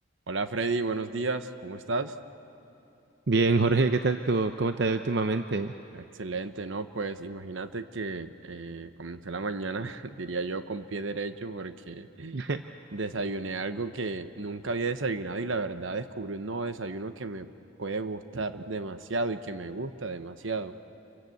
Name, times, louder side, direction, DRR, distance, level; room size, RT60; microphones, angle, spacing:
voice 1, 0.3-2.1 5.9-12.4 12.9-17.5 17.8-20.7, right 3 dB, 75° right, 10 dB, 1.1 m, -33 dB
voice 2, 3.3-5.7 12.3-12.6, right 3 dB, 55° right, 8 dB, 0.7 m, -25 dB
27.5 x 24.0 x 8.0 m, 2.8 s
head